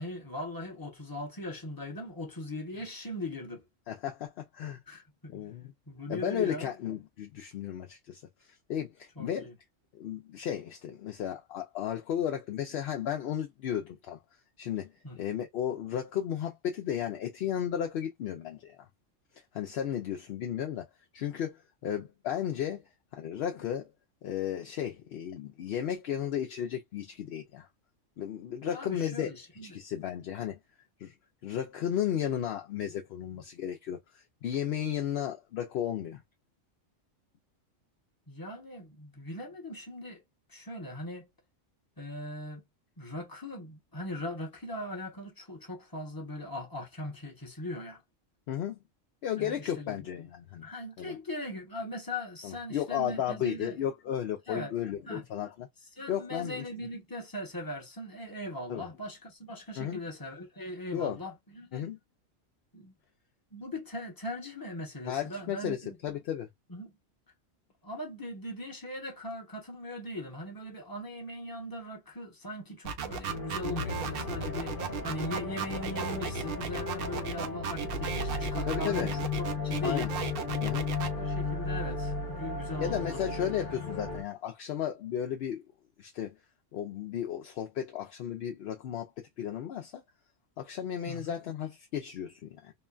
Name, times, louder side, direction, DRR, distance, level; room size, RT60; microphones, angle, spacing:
voice 1, 0.0-3.6 4.9-5.5 5.9-6.7 9.2-9.5 15.0-15.2 28.6-29.8 38.3-40.2 40.5-41.3 42.0-42.6 43.0-48.0 49.4-50.0 50.6-53.8 54.5-54.7 55.1-55.2 56.0-61.9 62.7-62.9 63.5-66.0 66.7-66.9 67.8-79.2 79.5-80.1 81.0-83.3 91.1-91.3, left 1 dB, 20° left, 0.8 m, -40 dB
voice 2, 3.9-4.8 5.3-5.7 6.1-9.5 9.9-14.2 14.6-14.9 15.2-18.9 19.5-20.9 21.1-22.8 23.1-23.9 24.2-27.7 28.2-29.3 29.6-30.6 31.0-31.1 31.4-36.2 48.5-48.8 49.2-50.7 51.0-51.2 52.4-55.7 56.1-56.6 58.7-58.9 59.8-60.0 60.9-61.2 61.7-62.0 65.0-66.5 78.7-79.2 79.8-80.1 80.6-80.9 82.8-85.7 86.0-86.3 86.7-90.0 90.6-92.7, left 9 dB, 65° left, 0.7 m, -34 dB
sound 1, 72.8-81.1, right 6 dB, 60° right, 0.7 m, -35 dB
sound 2, 73.3-84.2, left 4 dB, 45° left, 1.0 m, -35 dB
3.0 x 2.2 x 2.3 m
omnidirectional pair, 1.3 m